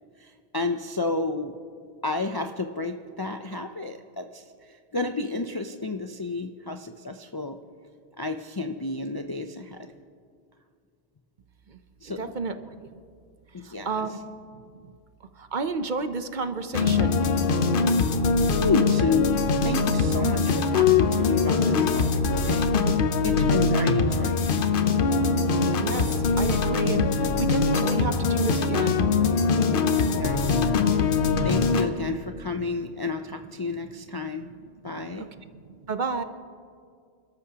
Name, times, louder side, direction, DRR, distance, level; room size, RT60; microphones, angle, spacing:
voice 1, 0.2-1.5 2.0-7.6 8.2-9.9 12.0-12.2 13.5-14.0 18.6-22.1 22.3-24.4 30.0-30.9 31.4-34.5 34.8-35.3, left 3 dB, 35° left, 5 dB, 0.4 m, -31 dB
voice 2, 12.2-12.9 13.6-14.9 15.3-17.2 25.8-29.1 33.9-34.0 34.8-36.2, right 4 dB, 50° right, 9 dB, 0.8 m, -33 dB
sound 1, 16.7-31.9, left 4 dB, 55° left, 0.9 m, -22 dB
28.0 x 13.0 x 2.9 m, 2.2 s
omnidirectional pair, 1.1 m